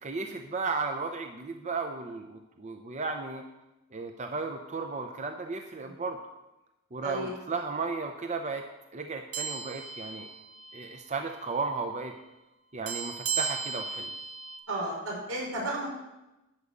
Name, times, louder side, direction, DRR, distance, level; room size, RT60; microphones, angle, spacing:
voice 1, 0.0-3.4 3.9-6.2 6.9-8.6 8.9-10.3 10.7-12.1 12.7-14.1, right 4 dB, 35° right, 4 dB, 0.7 m, -34 dB
Korean Bell, 9.3-11.0 11.3-11.5 12.9-14.6, right 6 dB, 70° right, 1.2 m, -35 dB
voice 2, 14.7-15.9, right 1 dB, 85° right, -3 dB, 5.0 m, -33 dB
12.0 x 5.0 x 8.2 m, 0.98 s
head